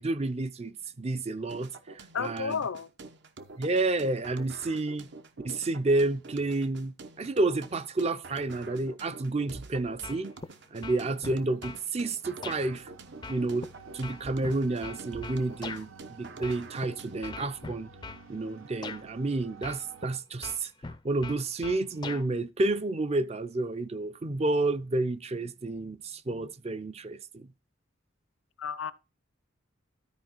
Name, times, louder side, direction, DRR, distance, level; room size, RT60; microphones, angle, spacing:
voice 1, 0.0-2.6 3.6-5.1 5.4-10.3 10.7-12.9 13.3-17.9 18.3-20.7 21.0-27.5, right 2 dB, 30° right, 0.5 m, -30 dB
sound 1, 1.5-17.5, right 3 dB, 60° right, 0.9 m, -47 dB
voice 2, 2.1-2.9 28.6-28.9, left 6 dB, 85° left, 0.6 m, -32 dB
sound 2, 10.0-10.5 10.8-11.8 12.4-12.6 13.2-15.9 16.4-16.9 17.2-18.2 18.8-19.0 19.6-20.1 20.4-22.3, left 4 dB, 20° left, 0.4 m, -40 dB
sound 3, 12.7-20.2, right 5 dB, 90° right, 1.1 m, -51 dB
13.0 x 4.7 x 4.5 m
head